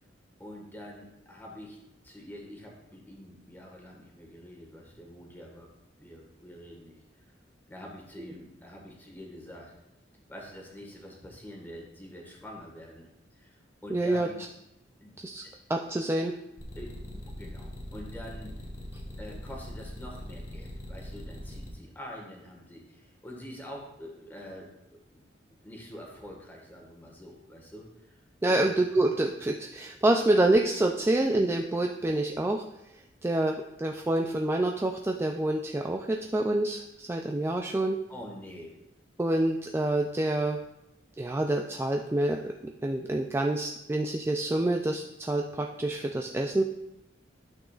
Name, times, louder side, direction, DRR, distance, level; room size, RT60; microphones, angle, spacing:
voice 1, 0.4-1.8 2.0-5.7 5.9-7.0 7.7-9.7 10.3-13.6 13.8-14.4 15.0-15.6 16.8-18.5 19.2-24.7 25.1-28.2 28.4-28.7 33.4-33.5 38.1-38.7, equal, 10° left, -1 dB, 1.6 m, -46 dB
voice 2, 13.9-14.3 15.2-15.4 15.7-16.4 28.4-32.6 33.2-38.0 39.2-40.6 41.2-42.5 42.8-46.6, right 1 dB, 15° right, 2 dB, 0.3 m, -27 dB
sound 1, 16.6-21.7, left 1 dB, 45° left, 1.4 m, -42 dB
11.5 x 6.2 x 2.4 m, 0.89 s
head